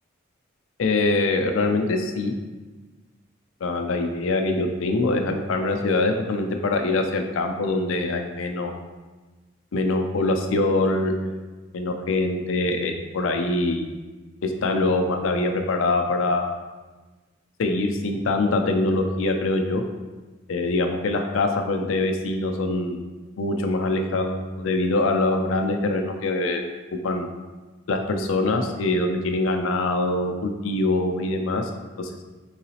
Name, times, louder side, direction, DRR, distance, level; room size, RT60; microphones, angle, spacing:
voice 1, 0.8-2.3 3.6-8.8 9.7-11.4 11.7-13.9 14.4-16.6 17.6-19.8 20.5-23.0 23.4-26.6 27.0-27.3 27.9-31.7 32.0-32.1, left 2 dB, 80° left, 5 dB, 0.5 m, -24 dB
3.9 x 3.8 x 2.8 m, 1.2 s
head